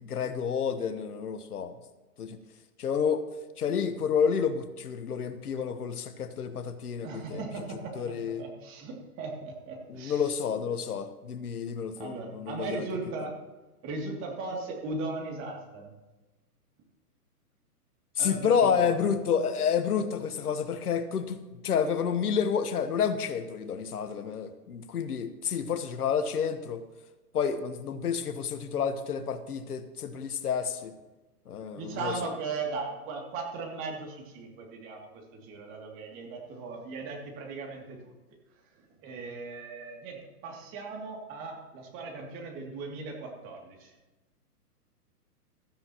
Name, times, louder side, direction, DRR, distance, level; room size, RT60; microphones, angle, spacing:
voice 1, 0.0-1.7 2.2-2.4 2.8-3.3 3.6-7.4 7.9-8.4 9.9-12.9 18.2-26.8 27.3-30.9 31.5-32.3, left 7 dB, 70° left, 10 dB, 1.3 m, -29 dB
voice 2, 7.0-10.3 12.0-13.4 13.8-15.9 18.2-19.1 31.7-38.1 38.7-43.9, right 3 dB, 25° right, 0 dB, 2.7 m, -38 dB
16.5 x 13.0 x 3.0 m, 1.1 s
hypercardioid pair, 135°, 47 cm